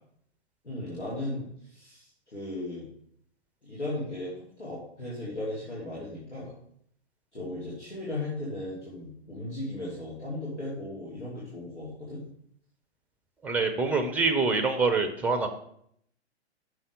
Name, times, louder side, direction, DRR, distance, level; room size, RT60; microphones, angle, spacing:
voice 1, 0.6-2.9 3.6-6.5 7.3-12.2, left 1 dB, 90° left, -7 dB, 2.4 m, -36 dB
voice 2, 13.4-15.5, right 4 dB, 5° right, 7 dB, 0.5 m, -25 dB
6.2 x 5.6 x 5.1 m, 0.69 s
figure-of-eight pair, 115°, 34 cm